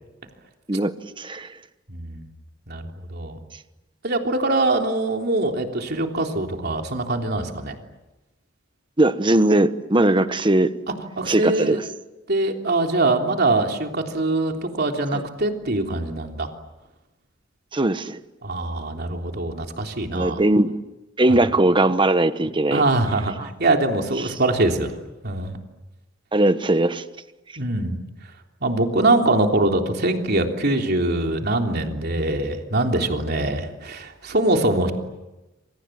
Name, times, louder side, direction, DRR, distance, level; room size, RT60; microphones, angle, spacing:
voice 1, 0.7-1.5 9.0-10.8 11.3-11.8 15.1-15.2 17.7-18.2 20.1-20.7 21.2-22.8 26.3-27.0, right 1 dB, 25° right, 1.2 m, -19 dB
voice 2, 1.9-2.3 2.7-2.8 3.1-3.4 4.0-7.8 11.2-11.8 12.3-16.5 18.4-20.4 22.7-24.9 25.2-25.6 27.6-28.0 28.6-34.9, right 2 dB, 55° right, 3.4 m, -23 dB
28.0 x 27.5 x 7.6 m
head